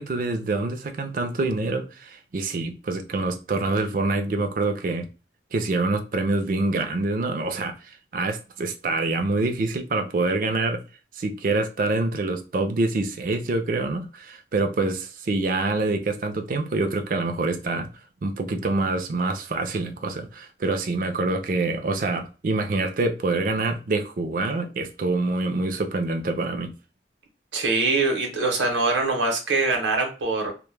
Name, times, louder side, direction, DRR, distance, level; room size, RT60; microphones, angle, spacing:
voice 1, 0.0-5.1 5.5-10.8 11.2-17.9 18.2-26.7, right 2 dB, 45° right, 0.4 m, -26 dB
voice 2, 27.5-30.5, right 3 dB, 85° right, 0.7 m, -23 dB
2.1 x 2.0 x 3.0 m
head